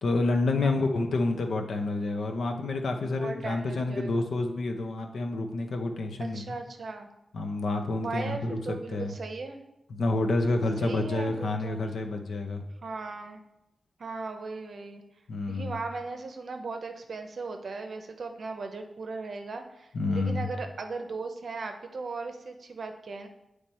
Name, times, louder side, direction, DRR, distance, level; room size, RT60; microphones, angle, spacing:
voice 1, 0.0-6.4 7.3-9.1 9.9-12.6 15.3-15.7 19.9-20.4, left 2 dB, 70° left, 4 dB, 0.7 m, -28 dB
voice 2, 3.0-4.3 6.2-7.1 8.0-9.6 10.8-11.9 12.8-13.4 14.0-15.0 15.5-23.3, right 3 dB, 50° right, 6 dB, 0.7 m, -37 dB
9.0 x 3.3 x 4.2 m, 0.90 s
wide cardioid pair, 155°, 0 cm